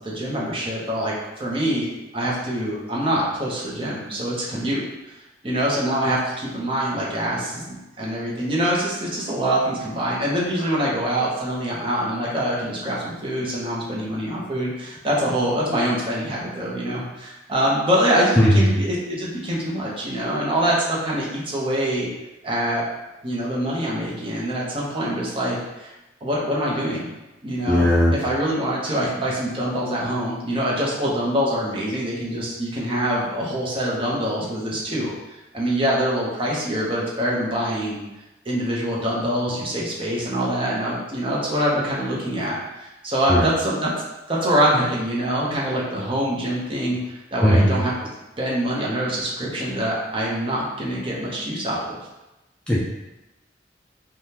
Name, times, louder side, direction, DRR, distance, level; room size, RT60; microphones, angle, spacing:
voice 1, 0.0-4.8 5.4-22.1 22.4-22.8 23.2-25.9 26.2-27.1 27.4-27.9 28.2-35.1 35.5-38.0 38.4-43.9 44.3-47.9 48.4-52.0, equal, 30° right, -5 dB, 0.7 m, -24 dB
voice 2, 18.4-18.7 27.7-28.2 43.3-43.5 47.4-47.8 52.7-52.8, equal, 5° left, -7 dB, 0.3 m, -17 dB
3.4 x 2.2 x 2.8 m, 1.0 s
head